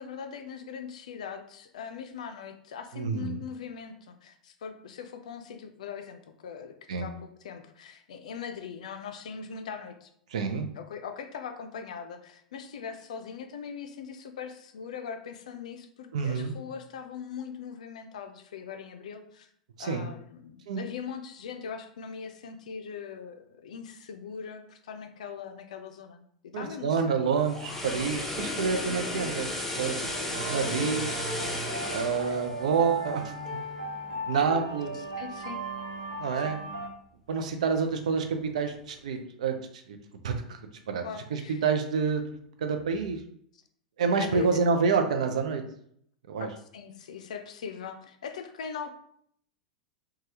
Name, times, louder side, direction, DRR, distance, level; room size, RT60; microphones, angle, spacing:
voice 1, 0.0-10.1 10.7-19.5 19.8-26.3 26.5-27.3 30.4-30.6 32.3-32.4 34.9-35.6 36.3-36.6 41.0-41.6 43.5-43.6 44.2-44.6 46.7-48.9, left 6 dB, 70° left, 7 dB, 0.4 m, -41 dB
voice 2, 3.0-3.4 6.9-7.1 10.3-10.7 16.1-16.5 19.8-20.1 20.7-20.8 26.5-31.1 31.9-33.6 34.3-35.0 36.2-36.6 37.3-40.0 40.2-40.6 40.9-41.0 41.3-43.2 44.0-45.6 46.3-46.5, right 5 dB, 70° right, 5 dB, 0.5 m, -28 dB
sound 1, 27.2-33.4 33.8-34.0, left 1 dB, 10° left, 0.7 m, -34 dB
sound 2, 30.3-36.9, right 1 dB, 90° right, 0.9 m, -37 dB
3.2 x 2.2 x 2.8 m, 0.66 s
figure-of-eight pair, 90°, 4 cm